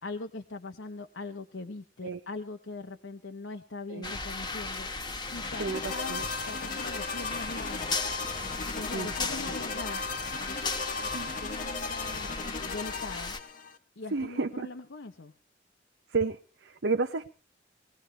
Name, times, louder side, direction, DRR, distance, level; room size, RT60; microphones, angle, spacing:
voice 1, 0.0-4.9 5.3-7.9 8.8-10.1 11.0-13.4 14.0-15.3, left 3 dB, 85° left, 6 dB, 0.9 m, -41 dB
sound 1, 4.0-13.4, left 3 dB, 25° left, 1.2 m, -36 dB
sound 2, 5.3-13.8, left 4 dB, 45° left, 1.0 m, -37 dB
voice 2, 5.6-6.2 8.9-9.1 11.1-11.3 14.1-14.7 16.1-17.3, right 4 dB, 70° right, 6 dB, 0.7 m, -31 dB
20.5 x 17.0 x 3.2 m, 0.35 s
head